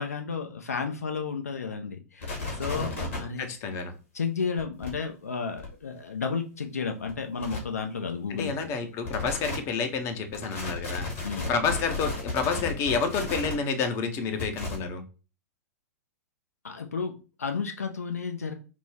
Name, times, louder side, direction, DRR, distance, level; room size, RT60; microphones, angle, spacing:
voice 1, 0.0-3.7 4.1-8.7 11.2-11.4 16.6-18.5, left 5 dB, 70° left, 5 dB, 0.5 m, -32 dB
sound 1, 2.2-3.2 4.6-4.9 5.6-5.7 7.1-7.2 7.4-7.6 9.0-9.6 10.3-13.5 14.4-14.8, left 3 dB, 55° left, 1.8 m, -33 dB
voice 2, 3.4-3.9 8.4-11.1 11.5-15.0, left 5 dB, 35° left, 7 dB, 0.7 m, -29 dB
5.1 x 2.1 x 3.3 m, 0.33 s
figure-of-eight pair, 100°, 8 cm